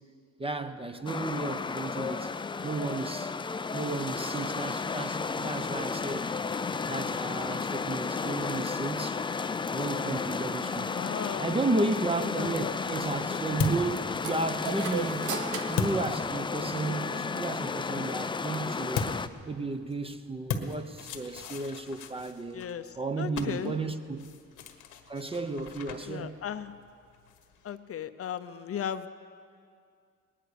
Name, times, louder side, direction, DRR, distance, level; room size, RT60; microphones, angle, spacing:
voice 1, 0.4-2.3 2.6-3.3 3.7-6.3 6.8-9.2 9.7-10.9 11.4-13.9 14.2-15.4 15.7-19.1 19.5-22.7 23.0-24.3 25.1-26.4, right 3 dB, 20° right, 0.8 m, -33 dB
sound 1, 1.1-19.3, left 4 dB, 15° left, 0.4 m, -33 dB
voice 2, 8.0-8.7 10.9-11.6 12.2-12.8 22.5-23.7 26.1-26.7 27.6-29.1, left 8 dB, 50° left, 0.7 m, -37 dB
sound 2, 12.5-16.9 18.9-27.8, left 5 dB, 90° left, 1.4 m, -39 dB
sound 3, 14.2-16.9, right 6 dB, 80° right, 1.1 m, -38 dB
19.5 x 10.0 x 6.9 m
cardioid pair, 90°, 30 cm